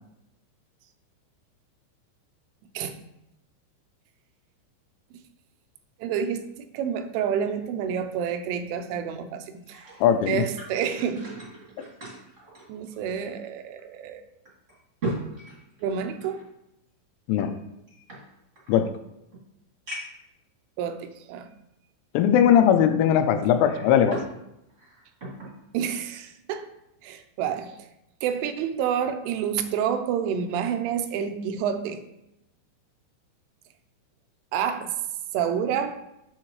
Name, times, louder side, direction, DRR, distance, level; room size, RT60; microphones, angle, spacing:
voice 1, 6.0-9.9 10.3-11.3 12.7-14.3 15.8-16.5 20.8-21.5 25.7-26.7 27.0-27.8 28.2-32.0 34.5-34.9 35.3-36.0, right 8 dB, 85° right, 8 dB, 3.2 m, -29 dB
sound 1, 9.6-13.4 13.8-13.9 14.4-16.4 17.3-18.7 19.3-19.4 19.9-20.3 21.0-21.1 23.4-24.4 24.7-25.6 26.0-26.2, right 1 dB, 30° right, 1.4 m, -38 dB
voice 2, 10.0-10.4 17.3-17.5 18.7-18.9 22.1-24.2, left 9 dB, 85° left, 9 dB, 3.0 m, -19 dB
8.8 x 7.3 x 3.1 m, 0.86 s
omnidirectional pair, 5.6 m